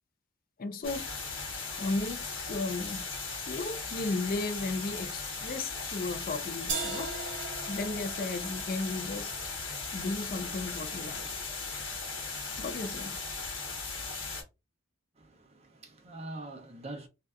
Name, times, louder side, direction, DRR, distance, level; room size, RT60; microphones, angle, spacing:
voice 1, 0.6-1.1 1.8-3.0 3.5-7.1 7.7-9.5 9.9-11.3 12.6-13.2, left 3 dB, 45° left, 0.4 m, -35 dB
sound 1, 0.8-14.4, left 4 dB, 60° left, 1.5 m, -38 dB
sound 2, 6.7-12.6, right 4 dB, 60° right, 1.0 m, -42 dB
voice 2, 15.2-17.1, right 2 dB, 30° right, 0.7 m, -44 dB
3.3 x 2.6 x 2.4 m
head